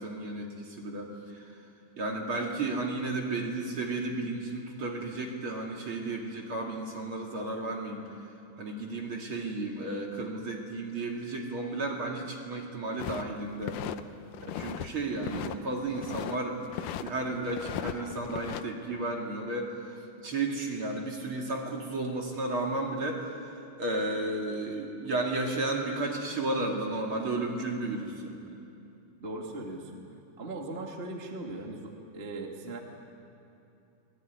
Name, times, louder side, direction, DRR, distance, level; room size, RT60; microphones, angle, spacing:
voice 1, 0.0-1.6 2.0-8.0 8.6-13.8 14.4-23.4 23.8-28.4 32.6-32.8, right 2 dB, 40° right, 0 dB, 2.7 m, -33 dB
sound 1, 13.0-14.0 14.3-14.9 15.2-16.4 16.7-17.1 17.5-18.6, left 12 dB, 75° left, 2.0 m, -37 dB
voice 2, 29.2-30.0 30.4-32.8, right 2 dB, 20° right, 1 dB, 1.7 m, -39 dB
29.0 x 20.0 x 9.6 m, 2.7 s
omnidirectional pair, 4.4 m